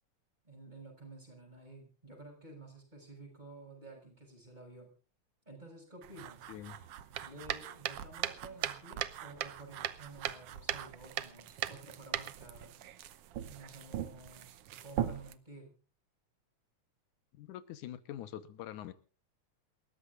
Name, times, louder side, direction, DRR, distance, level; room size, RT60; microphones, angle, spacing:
voice 1, 0.4-4.9 5.4-6.4 7.2-12.8 13.4-15.8, right 2 dB, 15° right, 2 dB, 6.6 m, -52 dB
sound 1, 6.0-15.3, right 11 dB, 65° right, 1.6 m, -39 dB
voice 2, 6.5-6.9 17.4-18.9, left 11 dB, 85° left, 13 dB, 2.6 m, -45 dB
28.0 x 14.0 x 2.5 m, 0.34 s
omnidirectional pair, 3.4 m